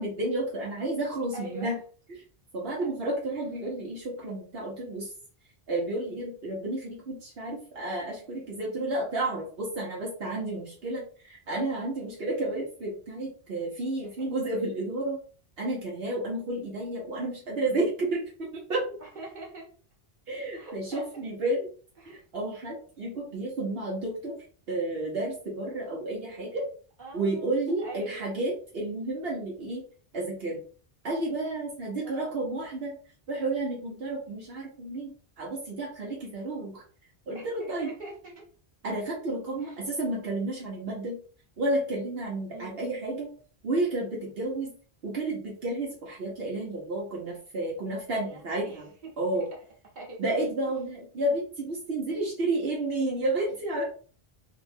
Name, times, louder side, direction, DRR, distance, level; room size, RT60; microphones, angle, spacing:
voice 1, 0.0-1.8 2.5-5.1 5.7-15.2 15.6-18.9 20.3-21.7 22.1-24.4 24.7-26.7 27.1-29.8 30.1-30.6 31.0-32.9 33.3-36.8 37.3-37.9 38.8-41.2 41.6-43.3 43.6-44.7 45.0-48.9 49.2-49.5 50.2-53.8, right 2 dB, 75° right, -4 dB, 1.2 m, -31 dB
voice 2, 1.3-1.8 2.7-2.9 14.0-14.3 19.0-19.7 20.5-21.2 22.0-22.2 27.0-28.3 32.0-32.4 37.3-38.5 39.6-39.8 42.5-42.8 48.1-49.6 49.9-50.2, right 2 dB, 50° right, -3 dB, 1.4 m, -44 dB
3.5 x 2.2 x 3.3 m, 0.41 s
omnidirectional pair, 1.0 m